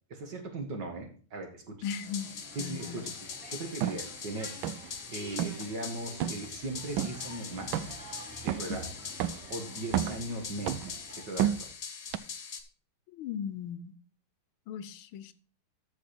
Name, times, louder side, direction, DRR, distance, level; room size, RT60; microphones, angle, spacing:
voice 1, 0.1-1.8 2.6-3.0 3.5-4.6 5.1-7.8 8.4-8.9 9.5-11.7, right 2 dB, 55° right, 4 dB, 2.4 m, -38 dB
voice 2, 1.8-3.1 13.1-13.9 14.7-15.3, left 8 dB, 80° left, 14 dB, 1.5 m, -38 dB
sound 1, 1.8-12.6, left 6 dB, 45° left, 1.0 m, -42 dB
sound 2, 2.0-11.2, right 1 dB, ahead, 5.8 m, -50 dB
sound 3, 3.8-4.0 4.6-5.0 5.3-5.6 6.2-6.5 7.0-7.2 7.7-8.1 8.5-8.8 9.2-9.5 9.8-10.3 10.7-11.0 11.4-11.7 12.1-12.2, right 11 dB, 75° right, 1.3 m, -30 dB
13.5 x 5.2 x 4.3 m, 0.40 s
omnidirectional pair, 2.3 m